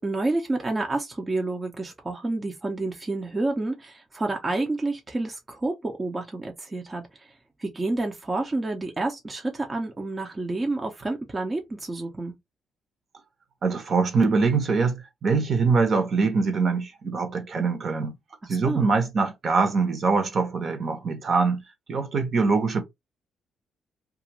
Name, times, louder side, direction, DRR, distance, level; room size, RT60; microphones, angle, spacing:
voice 1, 0.0-7.3 7.6-12.3 18.6-18.9, right 2 dB, 25° right, 0.6 m, -29 dB
voice 2, 13.6-18.1 18.5-21.6 21.9-22.8, right 4 dB, 50° right, 0.9 m, -23 dB
2.4 x 2.4 x 2.9 m
cardioid pair, 90°, 0 cm